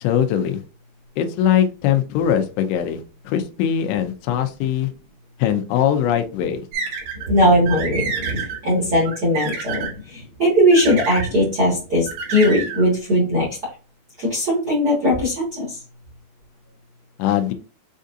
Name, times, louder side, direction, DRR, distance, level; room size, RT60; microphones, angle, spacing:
voice 1, 0.0-0.6 1.2-3.0 3.3-4.9 5.4-6.6 17.2-17.5, left 10 dB, 85° left, 7 dB, 2.9 m, -21 dB
sound 1, 6.7-7.3 7.7-8.6 9.1-9.9 10.7-11.3 12.1-12.8, right 5 dB, 65° right, 3.0 m, -28 dB
voice 2, 7.1-13.5 14.2-15.8, equal, 85° right, -4 dB, 0.9 m, -19 dB
7.4 x 2.7 x 2.5 m, 0.34 s
omnidirectional pair, 4.9 m